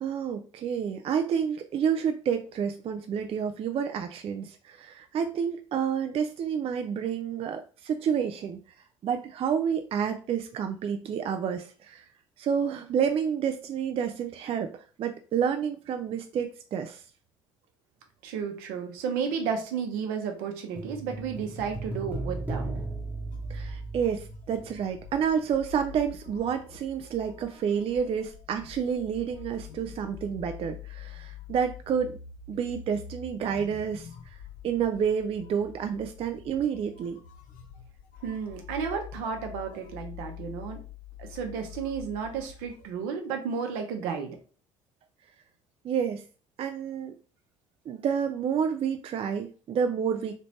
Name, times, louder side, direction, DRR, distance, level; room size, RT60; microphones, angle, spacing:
voice 1, 0.0-8.6 9.0-12.0 12.4-17.0 23.5-32.1 32.5-34.4 34.6-37.2 45.8-46.2 46.6-47.1 47.9-50.4, right 7 dB, 35° right, 6 dB, 0.4 m, -29 dB
voice 2, 18.2-22.7 38.2-40.8 41.2-44.4, right 6 dB, 65° right, 4 dB, 0.8 m, -32 dB
sound 1, 20.8-25.2 25.5-25.6, right 2 dB, 10° right, 1.0 m, -36 dB
sound 2, 23.3-42.9, left 9 dB, 55° left, 0.6 m, -46 dB
3.1 x 3.0 x 2.7 m, 0.38 s
figure-of-eight pair, 55°, 16 cm